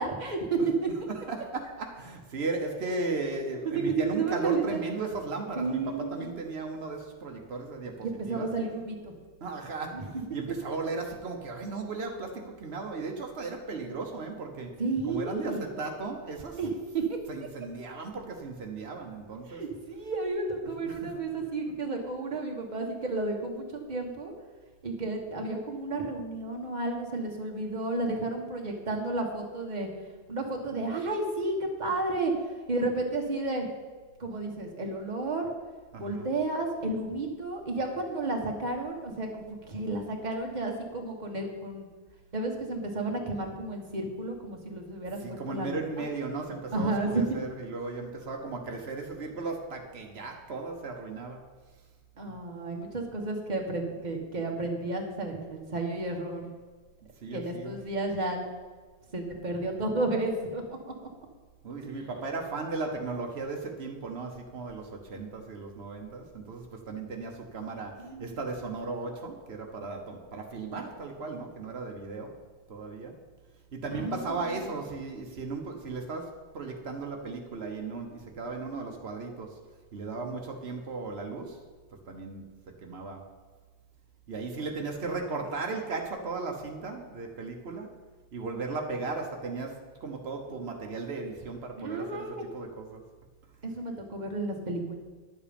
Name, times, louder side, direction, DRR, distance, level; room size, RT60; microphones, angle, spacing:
voice 1, 0.0-0.9 3.7-4.8 5.5-6.1 8.0-9.1 9.9-10.2 14.8-15.7 16.6-17.2 19.4-24.3 24.8-29.9 30.3-33.7 34.2-35.5 36.0-41.9 42.3-45.8 46.7-47.2 52.2-56.5 57.3-58.4 59.1-60.9 68.0-68.3 73.9-74.6 75.3-75.4 91.7-92.4 93.6-95.0, right 2 dB, 45° right, 1 dB, 1.5 m, -32 dB
voice 2, 1.1-8.5 9.4-14.8 15.0-16.6 17.3-19.6 20.9-21.1 35.9-36.3 45.2-51.5 57.2-57.8 61.6-72.3 72.7-73.2 73.7-79.6 79.9-81.6 82.1-82.5 82.8-83.2 84.3-87.9 88.3-93.0, right 3 dB, 90° right, 2 dB, 1.3 m, -36 dB
10.5 x 7.4 x 5.2 m, 1.4 s
omnidirectional pair, 1.0 m